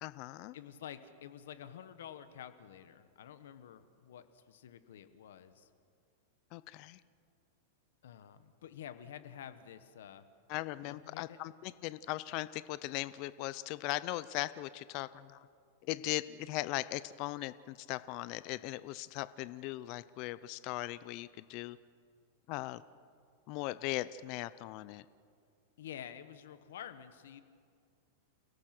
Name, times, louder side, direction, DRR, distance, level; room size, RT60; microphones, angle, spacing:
voice 1, 0.0-0.6 6.5-7.0 10.5-15.5 15.8-21.8 22.5-22.8 23.5-25.0, left 17 dB, 40° left, 16 dB, 0.5 m, -39 dB
voice 2, 0.5-5.7 8.0-10.2 10.8-11.4 25.8-27.4, left 10 dB, 80° left, 11 dB, 1.4 m, -49 dB
29.5 x 17.5 x 6.1 m, 2.2 s
supercardioid pair, 155°, 0 cm